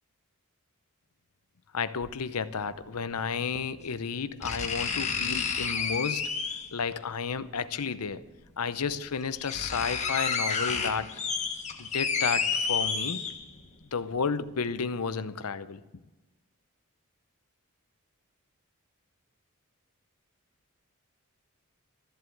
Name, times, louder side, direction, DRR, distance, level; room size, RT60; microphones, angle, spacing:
voice 1, 1.7-6.2 6.7-8.2 8.6-11.1 11.8-13.2 13.9-15.8, left 5 dB, 85° left, 14 dB, 0.7 m, -32 dB
sound 1, 2.0-2.1 3.5-3.6 4.4-6.8 8.1-8.2 8.9-9.0 9.2-13.7 14.1-14.2, left 5 dB, 30° left, 1.4 m, -30 dB
14.0 x 7.8 x 8.4 m, 1.1 s
head